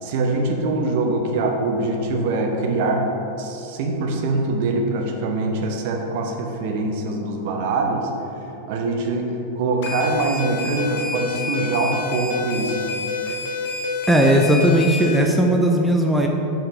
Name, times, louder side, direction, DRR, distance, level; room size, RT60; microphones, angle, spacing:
voice 1, 0.0-3.1 3.4-8.1 8.7-12.9, right 3 dB, 50° right, 2 dB, 0.8 m, -23 dB
sound 1, 9.8-15.2, left 3 dB, 50° left, 0.8 m, -28 dB
voice 2, 14.1-16.3, equal, 5° right, 1 dB, 0.4 m, -17 dB
5.4 x 4.4 x 4.9 m, 3.0 s
figure-of-eight pair, 90°, 0 cm